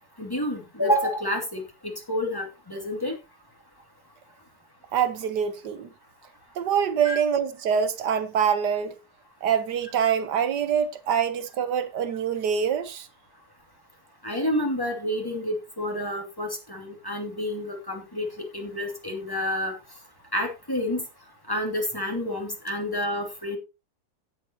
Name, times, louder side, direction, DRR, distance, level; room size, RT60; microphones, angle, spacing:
voice 1, 0.2-3.1 7.0-7.2 11.1-11.2 14.2-19.7 20.3-21.0 21.5-23.6, left 1 dB, 15° left, 2.7 m, -29 dB
voice 2, 4.9-5.9 6.6-9.0 9.4-13.1, right 8 dB, 85° right, 1.7 m, -25 dB
16.0 x 7.8 x 2.9 m
omnidirectional pair, 1.8 m